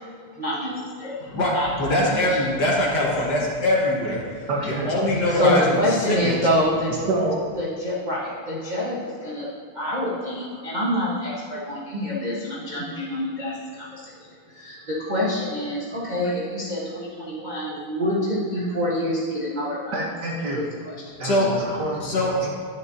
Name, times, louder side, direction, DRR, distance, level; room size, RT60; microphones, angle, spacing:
voice 1, 0.3-1.7 2.1-2.4 5.3-7.0 7.6-9.5 9.7-14.1 14.5-20.0 20.5-20.9 21.4-21.5, left 1 dB, 30° right, -7 dB, 0.8 m, -26 dB
voice 2, 1.2-6.4 21.2-21.5 22.0-22.5, left 1 dB, 55° left, -3 dB, 1.8 m, -23 dB
voice 3, 4.5-4.9 7.1-7.4 19.9-20.6 21.2-22.5, right 2 dB, 55° right, -2 dB, 1.4 m, -27 dB
10.0 x 8.9 x 2.7 m, 2.1 s
omnidirectional pair, 2.4 m